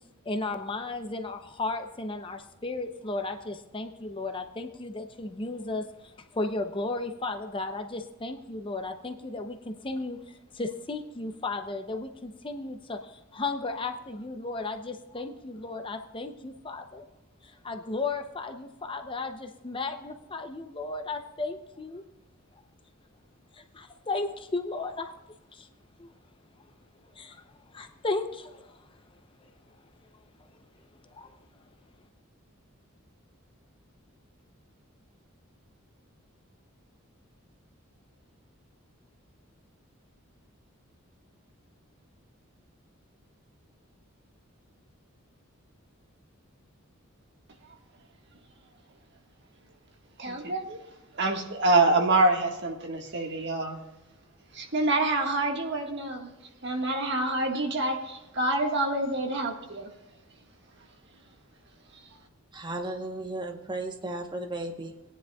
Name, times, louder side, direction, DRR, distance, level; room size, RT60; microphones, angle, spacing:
voice 1, 0.2-5.9 6.3-17.0 17.4-22.0 23.5-25.1 25.5-25.7 26.0-26.1 27.2-27.4 27.7-28.8 31.1-31.3, left 3 dB, 25° left, 6 dB, 0.6 m, -34 dB
voice 2, 50.2-50.8 51.1-53.8 54.5-56.3 56.6-59.9, right 2 dB, 55° right, 3 dB, 1.6 m, -26 dB
voice 3, 62.5-65.1, right 2 dB, 20° right, 4 dB, 1.0 m, -35 dB
19.0 x 10.0 x 2.3 m, 1.0 s
head